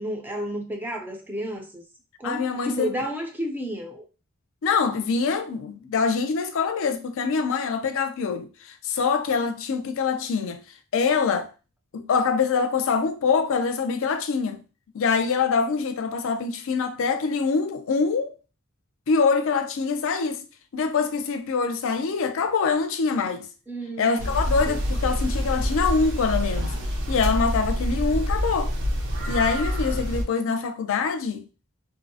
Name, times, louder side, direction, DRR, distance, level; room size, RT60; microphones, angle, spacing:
voice 1, 0.0-1.8 2.2-4.0 23.7-24.3 24.7-24.8, right 1 dB, 10° right, 0.5 m, -31 dB
voice 2, 2.2-2.9 4.6-10.6 10.9-11.5 11.9-14.6 14.9-18.3 19.1-20.5 20.7-23.5 24.0-26.7 27.1-28.7 29.3-31.4, left 5 dB, 65° left, 0.4 m, -24 dB
sound 1, 24.2-30.2, equal, 60° right, 0.6 m, -26 dB
2.6 x 2.0 x 2.6 m
head